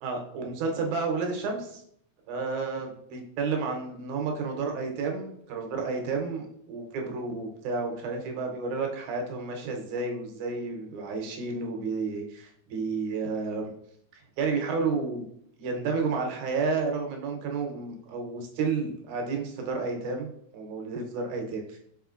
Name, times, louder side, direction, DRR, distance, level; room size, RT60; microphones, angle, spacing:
voice 1, 0.0-1.8 2.3-13.7 14.4-15.3 15.6-21.8, right 4 dB, 75° right, 2 dB, 2.1 m, -31 dB
5.0 x 4.2 x 2.4 m, 0.69 s
omnidirectional pair, 3.7 m